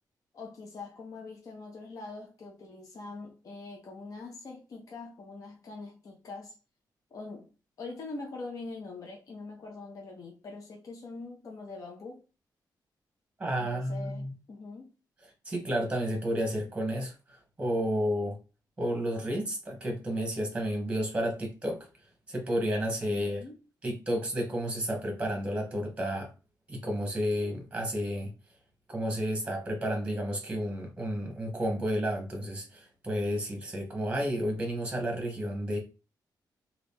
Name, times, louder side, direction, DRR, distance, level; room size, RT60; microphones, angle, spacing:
voice 1, 0.3-6.5 7.1-7.5 7.8-12.2 13.6-14.9 23.0-23.6, left 3 dB, 50° left, 0.6 m, -43 dB
voice 2, 13.4-14.3 15.4-17.1 17.6-18.4 18.8-21.9 22.3-23.4 23.8-26.3 26.7-28.3 28.9-35.8, equal, 15° right, 1.1 m, -31 dB
2.9 x 2.4 x 3.5 m
wide cardioid pair, 155°, 8 cm